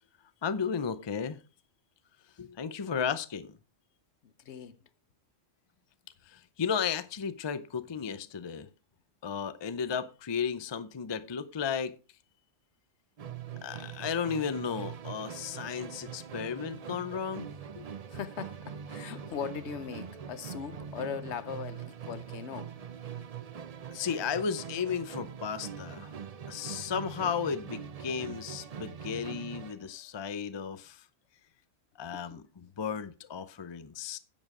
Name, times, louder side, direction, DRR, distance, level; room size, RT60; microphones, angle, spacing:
voice 1, 0.4-1.4 2.4-3.5 6.3-8.7 9.2-12.0 13.6-17.9 23.9-26.1 26.5-31.0 32.0-34.2, left 6 dB, 30° left, 0.5 m, -34 dB
voice 2, 4.2-4.9 18.1-22.7 29.8-29.9 32.1-32.4, left 7 dB, 65° left, 1.0 m, -40 dB
Musical instrument, 13.2-29.9, right 7 dB, 45° right, 0.5 m, -43 dB
10.5 x 7.5 x 4.7 m
omnidirectional pair, 1.3 m